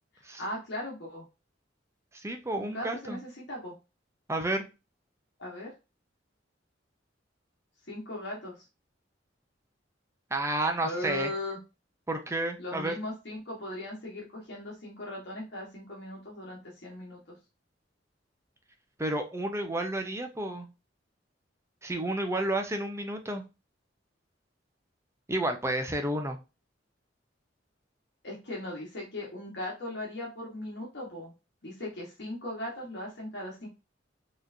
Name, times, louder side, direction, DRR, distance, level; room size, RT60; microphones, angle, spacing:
voice 1, 0.1-1.2 2.5-3.7 5.4-5.7 7.9-8.6 10.8-11.6 12.6-17.4 28.2-31.3 31.6-33.7, left 1 dB, 65° left, -3 dB, 1.4 m, -38 dB
voice 2, 2.1-3.2 4.3-4.6 10.3-11.3 12.1-13.0 19.0-20.7 21.8-23.4 25.3-26.4, right 1 dB, 15° right, 4 dB, 0.7 m, -31 dB
4.6 x 3.1 x 2.7 m, 0.27 s
head